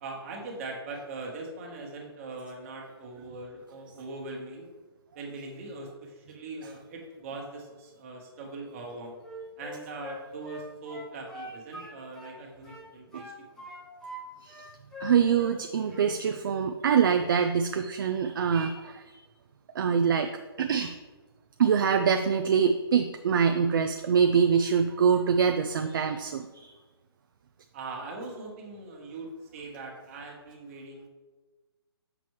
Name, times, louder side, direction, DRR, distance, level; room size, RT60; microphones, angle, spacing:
voice 1, 0.0-4.7 5.1-9.1 9.6-13.6 15.9-16.1 27.7-31.1, right 3 dB, 30° right, 0 dB, 1.3 m, -41 dB
Wind instrument woodwind instrument, 9.2-12.4 12.6-14.2 14.5-15.6 15.8-16.1, equal, 5° left, 0.7 m, -43 dB
voice 2, 15.0-19.2 19.7-20.3 20.6-20.9 21.6-26.7, right 7 dB, 50° right, 6 dB, 0.4 m, -25 dB
6.9 x 6.0 x 3.2 m, 1.2 s
hypercardioid pair, 160°, 14 cm